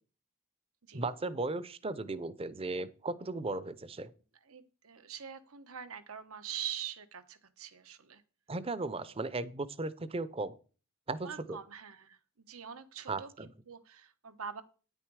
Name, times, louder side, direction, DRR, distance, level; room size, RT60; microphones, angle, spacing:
voice 1, 0.9-4.1 8.5-10.6 11.1-11.6 13.1-13.5, right 3 dB, 25° right, 17 dB, 0.6 m, -36 dB
voice 2, 4.5-8.2 11.2-14.6, right 9 dB, 85° right, 11 dB, 1.1 m, -44 dB
9.8 x 9.1 x 4.8 m, 0.37 s
head